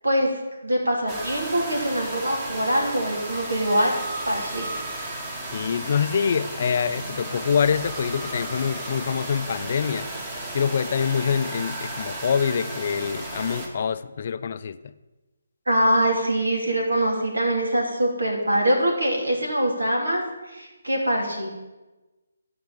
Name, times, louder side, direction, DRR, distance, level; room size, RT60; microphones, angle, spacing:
voice 1, 0.6-3.9 4.2-4.9 15.7-21.5, right 1 dB, 85° right, -1 dB, 3.2 m, -23 dB
sound 1, 1.1-13.7, right 1 dB, 25° right, 2.0 m, -34 dB
voice 2, 5.5-10.1 10.5-14.8, left 7 dB, 45° left, 13 dB, 0.4 m, -25 dB
12.0 x 5.0 x 7.7 m, 1.1 s
figure-of-eight pair, 150°, 0 cm